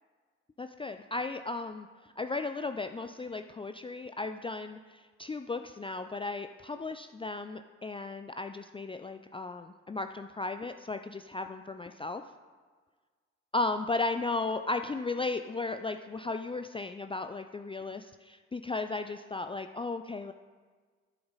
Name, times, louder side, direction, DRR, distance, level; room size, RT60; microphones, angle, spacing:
voice 1, 0.6-1.9 2.2-12.2 13.5-20.3, left 3 dB, 15° left, 7 dB, 0.5 m, -35 dB
14.0 x 7.8 x 4.1 m, 1.5 s
figure-of-eight pair, 45°, 36 cm